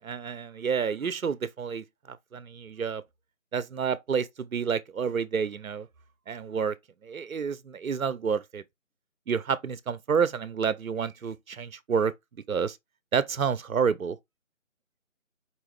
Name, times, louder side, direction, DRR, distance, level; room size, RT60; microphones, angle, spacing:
voice 1, 0.0-3.0 3.5-5.9 6.3-6.8 7.0-8.6 9.3-12.1 12.5-12.8 13.1-14.2, right 6 dB, 80° right, 0.6 m, -29 dB
4.6 x 3.1 x 3.3 m
figure-of-eight pair, 155°, 41 cm